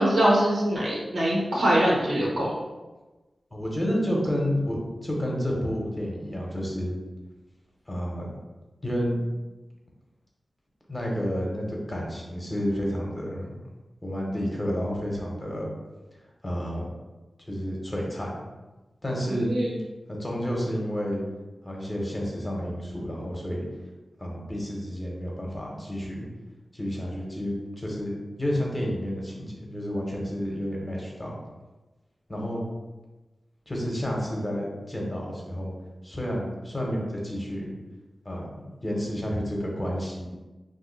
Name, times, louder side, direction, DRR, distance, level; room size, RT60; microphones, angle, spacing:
voice 1, 0.0-2.6 19.4-19.7, right 1 dB, 85° right, -5 dB, 1.0 m, -23 dB
voice 2, 3.5-4.8 5.0-7.0 7.9-8.3 8.8-9.2 10.9-13.6 14.0-15.7 16.4-16.9 17.5-18.3 19.0-19.5 20.1-21.2 21.6-23.6 24.2-26.3 26.7-31.3 32.3-32.6 33.7-35.7 36.0-37.7 38.2-38.5 38.8-40.3, equal, 20° left, -2 dB, 0.8 m, -30 dB
2.6 x 2.3 x 3.9 m, 1.1 s
wide cardioid pair, 75°, 0 cm